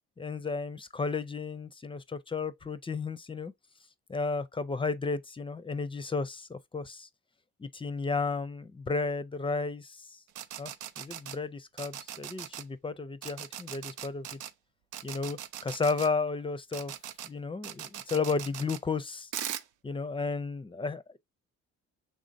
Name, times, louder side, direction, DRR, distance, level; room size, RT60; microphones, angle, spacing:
voice 1, 0.2-3.5 4.1-7.1 7.6-10.2 10.6-10.7 11.0-14.4 15.0-16.9 17.2-19.3 19.8-21.2, left 4 dB, 15° left, 0.5 m, -33 dB
sound 1, 10.3-11.4 11.8-12.6 13.2-14.5 14.9-16.1 16.7-17.3 17.6-18.8 19.3-19.6, right 11 dB, 80° right, 0.5 m, -40 dB
5.1 x 3.5 x 2.6 m
cardioid pair, 90°, 30 cm